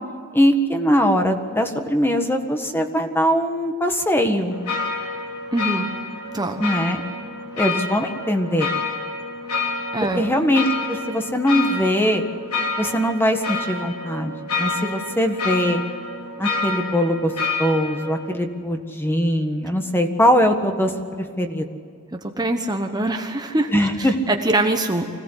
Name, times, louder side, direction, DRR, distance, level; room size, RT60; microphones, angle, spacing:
voice 1, 0.3-4.5 6.6-7.0 7.6-8.7 10.2-12.2 12.8-15.8 16.4-17.3 17.6-21.6 23.7-24.2, equal, 10° left, 5 dB, 1.6 m, -21 dB
sound 1, 4.5-18.4, left 3 dB, 90° left, 3.5 m, -28 dB
voice 2, 5.5-5.9 6.3-6.6 9.9-10.2 22.1-23.7 24.0-25.1, right 2 dB, 20° right, 4 dB, 1.1 m, -23 dB
25.0 x 17.5 x 8.2 m, 2.2 s
head